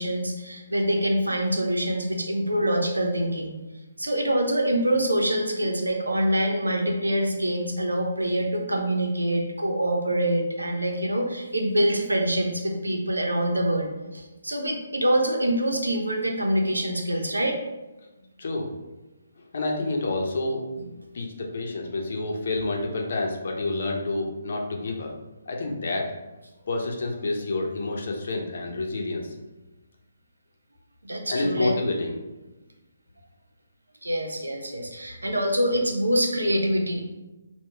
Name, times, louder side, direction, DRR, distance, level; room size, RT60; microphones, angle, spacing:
voice 1, 0.0-3.5 4.0-17.6 31.0-31.7 34.0-37.0, right 1 dB, 90° right, 2 dB, 0.7 m, -25 dB
voice 2, 18.4-18.8 19.4-20.7 21.1-25.1 25.5-26.1 26.7-29.3 31.3-32.1, left 2 dB, 60° left, 1 dB, 0.7 m, -28 dB
3.7 x 2.3 x 4.4 m, 1.1 s
figure-of-eight pair, 140°, 0 cm